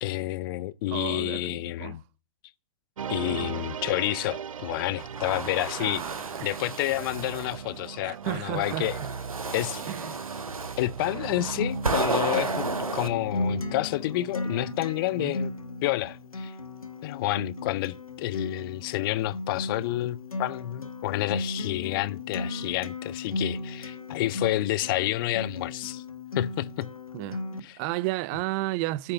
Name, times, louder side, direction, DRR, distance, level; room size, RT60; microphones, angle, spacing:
voice 1, 0.0-2.0 3.1-6.0 6.4-9.0 9.5-9.8 10.8-12.7 12.9-15.5 15.8-16.5 17.0-26.0 26.3-26.9 27.6-27.8, left 16 dB, 40° left, 0.6 m, -29 dB
voice 2, 0.9-2.0 3.3-3.6 5.8-6.6 8.0-9.1 9.9-10.2 15.2-15.4 27.1-27.4 27.8-29.1, right 18 dB, 30° right, 0.5 m, -33 dB
sound 1, 3.0-15.1, right 7 dB, 70° right, 0.7 m, -39 dB
sound 2, 5.0-7.6 8.2-13.1, right 4 dB, 85° right, 1.1 m, -33 dB
Acoustic guitar, 11.6-27.6, left 2 dB, 90° left, 1.3 m, -36 dB
9.3 x 6.5 x 6.8 m
figure-of-eight pair, 115°, 18 cm